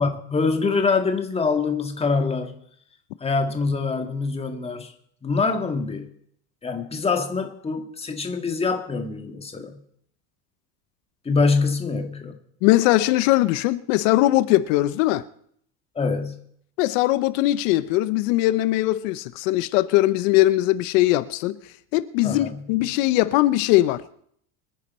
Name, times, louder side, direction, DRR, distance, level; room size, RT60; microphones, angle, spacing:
voice 1, 0.0-2.6 3.2-4.9 5.2-6.1 6.6-9.8 11.3-12.4 16.0-16.4 22.2-22.7, left 4 dB, 15° left, 1.8 m, -24 dB
voice 2, 12.6-15.2 16.8-21.6 21.9-24.0, left 16 dB, 80° left, 0.8 m, -20 dB
25.0 x 10.0 x 4.2 m
cardioid pair, 145°, 38 cm